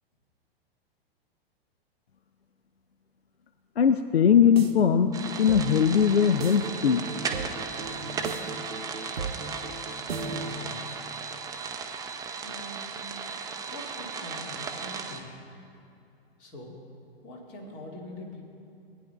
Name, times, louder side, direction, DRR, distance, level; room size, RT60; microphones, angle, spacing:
voice 1, 3.8-7.0, left 7 dB, 85° left, 10 dB, 0.5 m, -21 dB
sound 1, 4.2-10.8, right 4 dB, 80° right, 0.8 m, -37 dB
sound 2, 5.1-15.2, right 5 dB, 10° right, 0.5 m, -36 dB
voice 2, 10.1-11.1 12.4-13.0 13.7-15.3 16.4-16.8 17.2-18.5, left 1 dB, 35° left, -1 dB, 2.0 m, -44 dB
19.0 x 9.3 x 2.3 m, 2.7 s
figure-of-eight pair, 100°, 30 cm